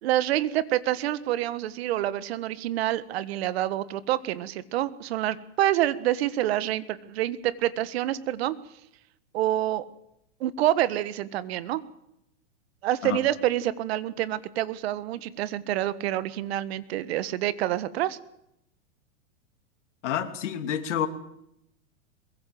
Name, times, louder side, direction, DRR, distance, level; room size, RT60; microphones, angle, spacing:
voice 1, 0.0-8.6 9.3-9.8 10.4-11.8 12.8-18.2, right 13 dB, 55° right, 15 dB, 1.6 m, -27 dB
voice 2, 20.0-21.1, left 9 dB, 75° left, 7 dB, 3.0 m, -28 dB
22.5 x 22.0 x 7.8 m, 0.81 s
hypercardioid pair, 145°, 36 cm